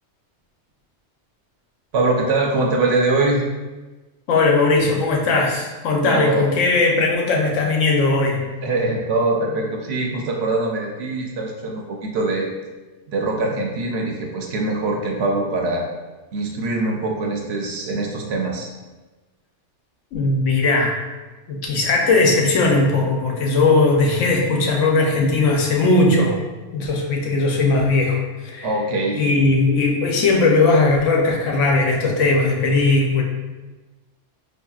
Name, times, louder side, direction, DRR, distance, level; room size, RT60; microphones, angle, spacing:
voice 1, 1.9-3.4 6.0-6.5 8.6-12.5 13.1-15.9 16.3-18.7 28.6-29.2, right 2 dB, 65° right, 0 dB, 0.8 m, -23 dB
voice 2, 4.3-8.4 20.1-21.0 21.5-26.4 26.7-28.7 29.1-33.2, left 3 dB, 80° left, 0 dB, 1.0 m, -18 dB
4.8 x 2.7 x 2.3 m, 1.2 s
omnidirectional pair, 1.3 m